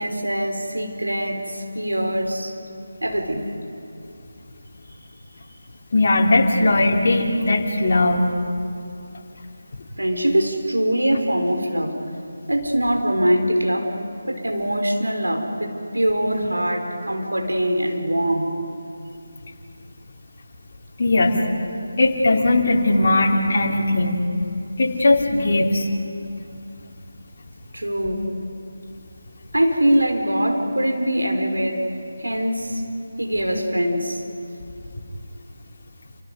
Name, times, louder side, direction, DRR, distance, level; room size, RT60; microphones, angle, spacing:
voice 1, 0.0-2.5 3.0-3.5 10.0-12.0 12.5-13.9 14.2-18.5 27.7-28.3 29.5-31.9 32.2-32.8 33.2-34.2, equal, 80° right, 3 dB, 4.4 m, -22 dB
voice 2, 5.9-8.2 21.0-21.4 22.0-24.2 24.8-25.9, left 2 dB, 40° left, -1 dB, 3.7 m, -18 dB
29.5 x 29.0 x 5.3 m, 2.5 s
figure-of-eight pair, 155°, 0 cm